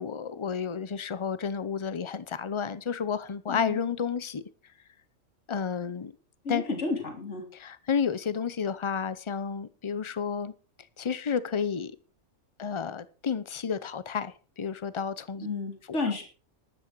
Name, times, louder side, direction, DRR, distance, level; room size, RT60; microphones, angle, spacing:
voice 1, 0.0-4.4 5.5-6.1 6.5-6.7 7.5-10.5 11.0-11.9 12.6-15.5 15.9-16.0, left 6 dB, 30° left, 0.7 m, -31 dB
voice 2, 3.5-3.8 6.4-7.4 15.4-16.2, left 3 dB, 60° left, 3.5 m, -31 dB
12.5 x 11.5 x 4.7 m
omnidirectional pair, 1.4 m